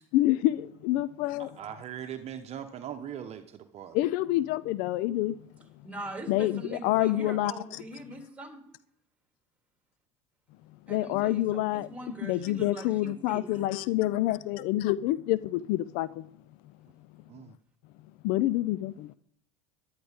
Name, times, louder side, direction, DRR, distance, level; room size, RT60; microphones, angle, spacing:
voice 1, 0.1-1.5 3.9-5.4 6.3-7.8 10.9-11.9 12.2-16.3 18.2-19.1, left 15 dB, 60° left, 0.5 m, -27 dB
voice 2, 1.4-4.0 17.3-17.5, right 9 dB, 40° right, 1.1 m, -40 dB
voice 3, 5.8-8.6 10.9-13.6, right 2 dB, 10° right, 3.4 m, -42 dB
13.5 x 11.5 x 3.6 m
hypercardioid pair, 90°, 16 cm